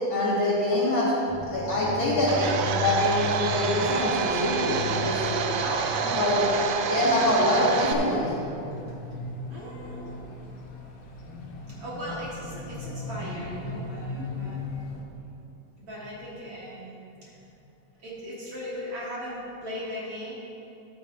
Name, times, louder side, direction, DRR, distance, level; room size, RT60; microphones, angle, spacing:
voice 1, 0.1-1.1 1.5-4.7 5.0-5.5 6.1-6.5 6.9-8.3, left 1 dB, 45° left, -8 dB, 2.3 m, -24 dB
sound 1, 1.3-15.0, left 2 dB, 65° left, 2.1 m, -37 dB
Domestic sounds home sounds, 2.3-7.9, right 6 dB, 85° right, 2.2 m, -28 dB
voice 2, 5.6-6.1 9.5-10.1 11.8-14.8 15.8-17.3 18.0-20.4, equal, 50° right, -6 dB, 2.2 m, -38 dB
13.5 x 11.5 x 2.6 m, 2.8 s
omnidirectional pair, 3.8 m